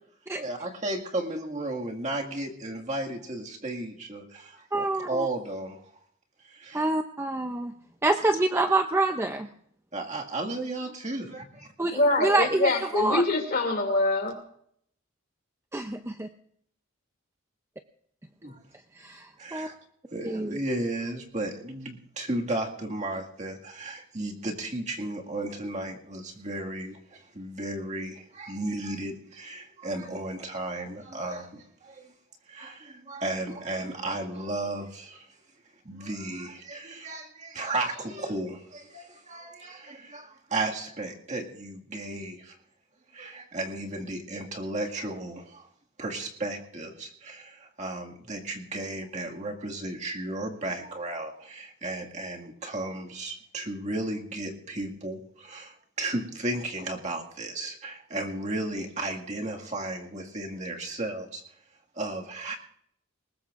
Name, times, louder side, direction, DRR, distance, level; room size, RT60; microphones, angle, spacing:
voice 1, 0.4-5.9 6.4-6.9 9.9-11.7 18.4-18.6 19.4-19.7 20.1-32.1 32.5-35.4 35.8-42.6 43.1-45.7 46.0-61.4 62.0-62.6, right 2 dB, 35° right, 1 dB, 1.9 m, -34 dB
voice 2, 4.7-5.3 6.7-7.7 8.0-9.5 11.8-13.2 15.7-16.3 18.9-19.7 20.2-20.6, right 2 dB, 15° right, 6 dB, 0.5 m, -27 dB
voice 3, 11.9-14.4, left 2 dB, 45° left, 5 dB, 2.6 m, -24 dB
20.5 x 20.0 x 2.5 m, 0.66 s
head